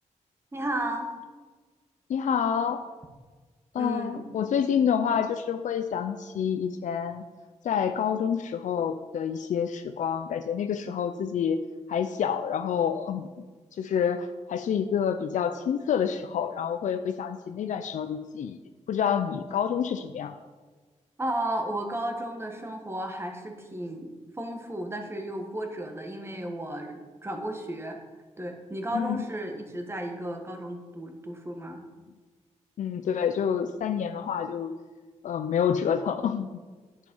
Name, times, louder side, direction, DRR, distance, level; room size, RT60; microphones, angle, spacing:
voice 1, 0.5-1.1 3.8-4.3 21.2-28.0 28.4-31.8, right 1 dB, 20° right, 4 dB, 1.4 m, -34 dB
voice 2, 2.1-2.8 3.7-7.2 7.6-11.6 11.9-13.3 13.7-18.6 18.9-20.3 28.9-29.2 32.8-34.7 35.2-36.5, left 8 dB, 85° left, 8 dB, 0.5 m, -28 dB
10.5 x 7.3 x 5.4 m, 1.4 s
wide cardioid pair, 115°, 13 cm